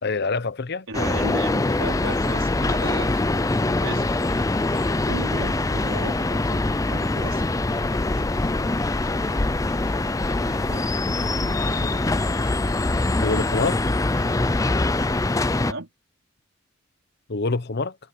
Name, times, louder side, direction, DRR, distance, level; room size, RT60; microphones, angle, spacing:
voice 1, 0.0-0.9 13.2-13.8 17.3-18.0, left 3 dB, 55° left, 0.9 m, -25 dB
sound 1, 0.9-15.7, left 2 dB, 15° left, 0.5 m, -23 dB
voice 2, 0.9-3.2 3.6-4.4 5.0-8.1 10.4-10.9 15.7-15.9, right 2 dB, 85° right, 3.9 m, -36 dB
sound 2, 1.2-15.5, equal, 5° right, 6.4 m, -42 dB
head